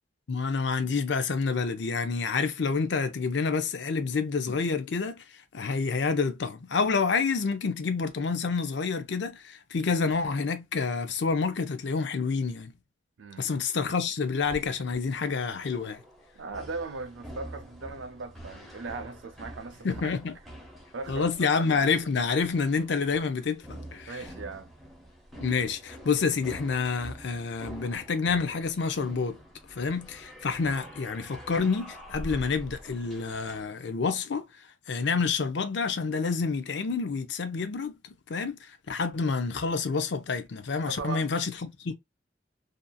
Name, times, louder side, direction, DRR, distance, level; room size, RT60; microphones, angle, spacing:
voice 1, 0.3-5.2 5.5-12.7 13.4-16.0 19.8-20.4 21.1-24.2 25.4-29.4 29.7-34.4 34.9-41.9, left 5 dB, 65° left, 0.5 m, -28 dB
sound 1, 14.4-33.6, equal, ahead, 0.7 m, -46 dB
voice 2, 16.3-20.1 20.9-21.3 24.1-24.7 40.8-41.3, right 3 dB, 80° right, 0.5 m, -38 dB
2.7 x 2.5 x 2.2 m
head